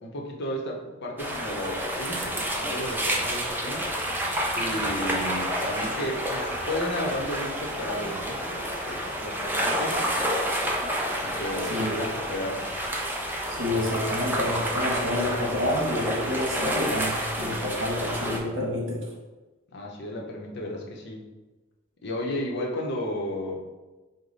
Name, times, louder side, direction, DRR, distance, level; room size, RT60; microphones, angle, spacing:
voice 1, 0.0-3.9 4.6-10.0 11.2-12.7 19.7-21.2 22.0-23.6, left 1 dB, 60° left, -1 dB, 0.8 m, -33 dB
sound 1, 1.2-18.4, equal, 10° right, 0.6 m, -29 dB
voice 2, 13.5-19.0, left 1 dB, 65° right, -3 dB, 1.2 m, -28 dB
4.9 x 2.1 x 3.9 m, 1.2 s
head